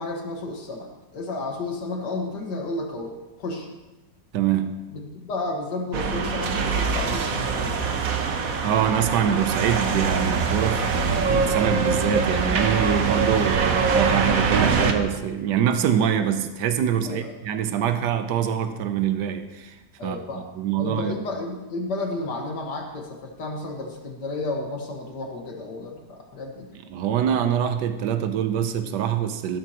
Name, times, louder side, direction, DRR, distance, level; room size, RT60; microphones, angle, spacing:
voice 1, 0.0-3.8 4.9-7.8 17.0-17.3 20.0-20.4 20.8-26.7, left 2 dB, 80° left, 1 dB, 2.2 m, -32 dB
voice 2, 4.3-4.7 8.6-19.8 20.0-21.2 26.9-29.6, right 9 dB, 85° right, 9 dB, 1.4 m, -24 dB
sound 1, 5.9-14.9, right 5 dB, 60° right, 1.3 m, -23 dB
15.0 x 12.5 x 3.0 m, 1.1 s
omnidirectional pair, 1.8 m